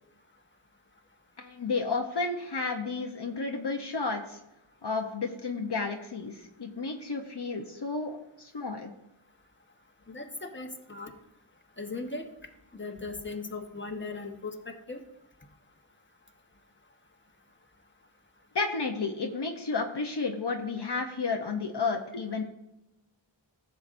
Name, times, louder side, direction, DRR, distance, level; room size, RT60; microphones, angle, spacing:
voice 1, 1.4-4.4 4.8-8.9 18.5-22.4, left 4 dB, 60° left, 3 dB, 0.9 m, -32 dB
voice 2, 10.1-11.1 11.8-12.3 12.7-15.0, left 3 dB, 25° left, 3 dB, 1.2 m, -38 dB
15.0 x 6.9 x 2.6 m, 0.92 s
wide cardioid pair, 40°, 46 cm